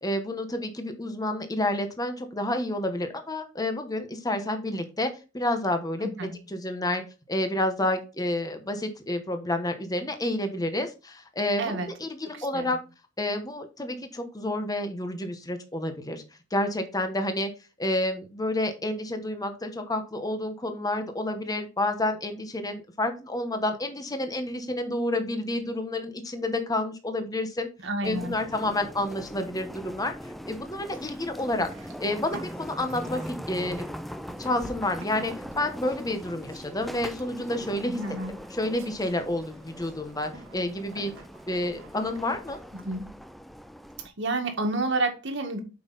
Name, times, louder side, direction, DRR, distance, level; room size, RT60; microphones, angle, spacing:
voice 1, 0.0-7.0 7.3-12.8 13.2-16.2 16.5-17.5 17.8-27.7 28.0-31.7 32.0-33.9 34.4-38.0 38.5-41.1 41.5-42.6, left 1 dB, 20° left, 7 dB, 1.1 m, -29 dB
voice 2, 6.0-6.4 11.6-11.9 12.3-12.7 27.8-28.3 37.8-38.4 42.8-43.1 44.2-45.6, right 2 dB, 65° right, 4 dB, 1.9 m, -29 dB
sound 1, 28.0-44.1, equal, ahead, 0.4 m, -41 dB
Livestock farm animals working animals, 30.6-43.0, right 2 dB, 90° right, 1.8 m, -50 dB
7.9 x 5.5 x 4.0 m, 0.31 s
head